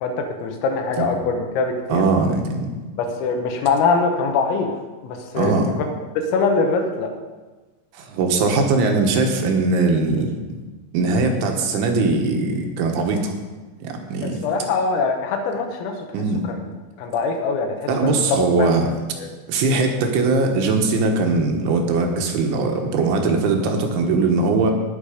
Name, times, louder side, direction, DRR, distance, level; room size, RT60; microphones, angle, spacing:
voice 1, 0.0-2.0 2.9-4.7 5.0-5.9 6.2-7.1 10.1-10.2 14.2-16.1 16.4-16.6 17.0-18.2 18.6-18.7 19.2-19.3, left 4 dB, 85° left, 4 dB, 4.0 m, -23 dB
voice 2, 1.9-2.7 5.4-5.7 7.9-10.3 10.9-13.3 13.8-14.4 16.1-16.4 17.9-18.9 19.5-24.7, right 3 dB, 75° right, 3 dB, 3.5 m, -20 dB
19.0 x 6.7 x 5.1 m, 1.3 s
omnidirectional pair, 5.8 m